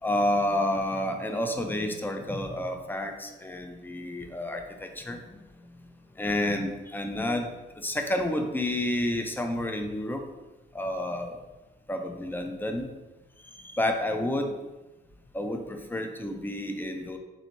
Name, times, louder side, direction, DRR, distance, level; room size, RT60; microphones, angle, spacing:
voice 1, 0.0-5.9 6.2-7.5 7.8-10.3 10.7-11.4 11.9-12.9 13.4-14.6 15.3-17.2, left 1 dB, 10° left, 5 dB, 0.5 m, -30 dB
4.1 x 3.3 x 3.0 m, 1.1 s
cardioid pair, 90°, 20 cm